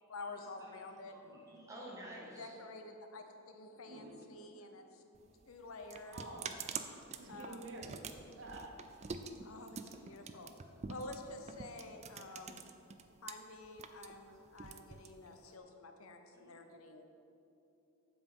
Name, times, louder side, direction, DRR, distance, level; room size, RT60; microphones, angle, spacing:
voice 1, 0.1-1.4 2.3-5.0 5.5-6.2 7.3-7.7 9.4-10.5 10.9-12.6 13.2-17.0, left 2 dB, 85° left, 6 dB, 0.8 m, -49 dB
voice 2, 1.1-2.5 9.4-9.5 9.8-10.0 14.2-14.4 15.4-15.5 16.3-16.6, right 1 dB, 15° right, -5 dB, 1.9 m, -52 dB
voice 3, 3.8-4.1 6.0-6.5 7.1-8.0 8.4-8.8 11.7-11.9, right 2 dB, 65° right, 1 dB, 1.2 m, -49 dB
sound 1, 5.1-13.3 13.6-15.6, right 5 dB, 30° right, 0.4 m, -46 dB
7.9 x 7.3 x 5.4 m, 2.8 s
head